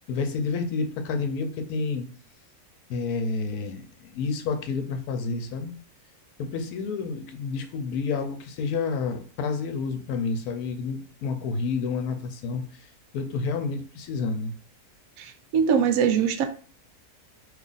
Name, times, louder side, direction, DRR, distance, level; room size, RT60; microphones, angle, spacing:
voice 1, 0.1-2.1 2.9-5.8 6.4-12.9 13.1-14.5, left 4 dB, 75° left, 7 dB, 1.1 m, -29 dB
voice 2, 15.2-16.5, right 7 dB, 70° right, 6 dB, 1.0 m, -22 dB
2.9 x 2.4 x 3.9 m, 0.41 s
omnidirectional pair, 1.6 m